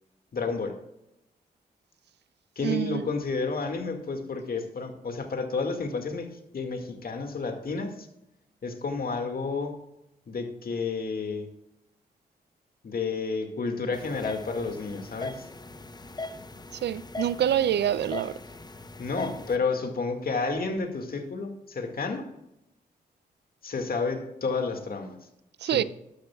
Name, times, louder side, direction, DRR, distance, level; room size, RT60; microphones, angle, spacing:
voice 1, 0.3-0.8 2.6-8.1 8.6-9.8 10.3-11.5 12.8-15.5 19.0-22.3 23.6-25.2 25.7-25.8, left 4 dB, 60° left, 2.1 m, -31 dB
voice 2, 2.6-3.0 16.8-18.3 25.6-25.8, right 10 dB, 75° right, 0.5 m, -26 dB
sound 1, 13.9-19.6, left 2 dB, 25° left, 0.8 m, -40 dB
13.0 x 12.0 x 2.4 m
cardioid pair, 55°, 18 cm